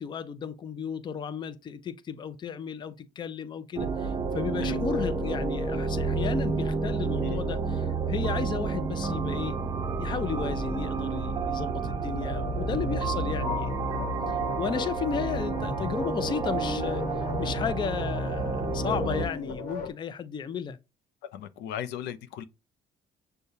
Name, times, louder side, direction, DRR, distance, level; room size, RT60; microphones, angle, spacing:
voice 1, 0.0-9.6 10.0-20.8, left 7 dB, 25° left, 0.4 m, -34 dB
sound 1, 3.8-19.3, right 3 dB, 25° right, 0.6 m, -30 dB
voice 2, 4.6-5.0 7.2-7.4 21.3-22.4, left 10 dB, 85° left, 0.5 m, -37 dB
sound 2, 12.3-19.9, left 3 dB, 60° left, 1.0 m, -38 dB
6.4 x 2.2 x 2.7 m
cardioid pair, 110°, 17 cm